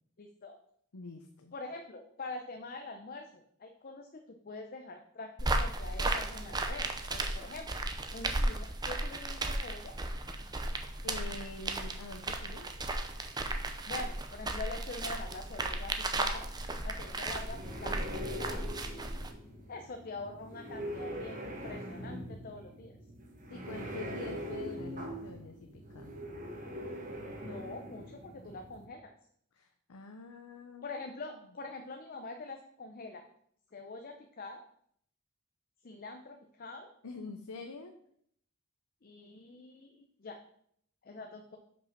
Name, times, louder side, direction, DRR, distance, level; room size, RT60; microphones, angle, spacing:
voice 1, 0.2-0.6 1.5-7.7 8.1-9.9 13.9-16.5 16.8-18.7 19.7-23.0 27.4-29.1 30.8-33.3 33.7-34.6 35.8-36.9 39.0-40.4 41.0-41.6, left 3 dB, 40° left, 5 dB, 0.6 m, -44 dB
voice 2, 0.9-1.5 11.0-12.7 23.5-26.2 29.5-30.9 31.3-31.4 37.0-38.0, left 3 dB, 85° left, 5 dB, 0.7 m, -46 dB
sound 1, 5.4-19.3, right 2 dB, 20° right, 0.6 m, -35 dB
sound 2, 17.1-28.9, equal, 35° right, 1.4 m, -42 dB
5.4 x 5.2 x 5.8 m, 0.67 s
head